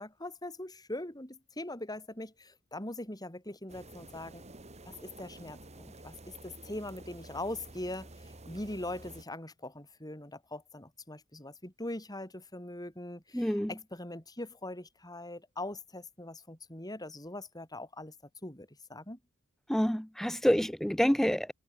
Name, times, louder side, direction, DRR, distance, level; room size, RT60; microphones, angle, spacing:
voice 1, 0.0-4.4 4.8-18.1 18.4-19.2, left 1 dB, 20° left, 5.1 m, -42 dB
sound 1, 3.7-9.2, right 2 dB, 30° right, 3.1 m, -50 dB
voice 2, 13.3-13.7 19.7-21.5, equal, ahead, 0.4 m, -27 dB
head